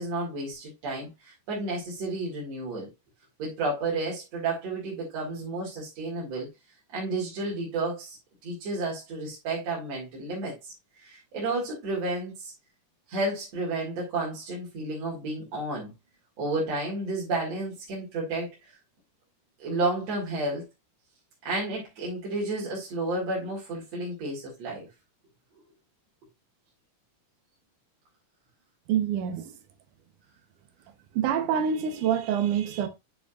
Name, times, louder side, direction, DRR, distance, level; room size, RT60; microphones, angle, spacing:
voice 1, 0.0-2.9 3.4-6.5 6.9-8.2 8.4-10.7 11.0-12.5 13.1-15.9 16.4-18.7 19.6-20.7 21.4-24.9, right 2 dB, 55° right, 3.2 m, -31 dB
voice 2, 28.9-29.5 31.1-32.9, right 8 dB, 80° right, 2.5 m, -26 dB
8.7 x 6.1 x 2.4 m
omnidirectional pair, 3.6 m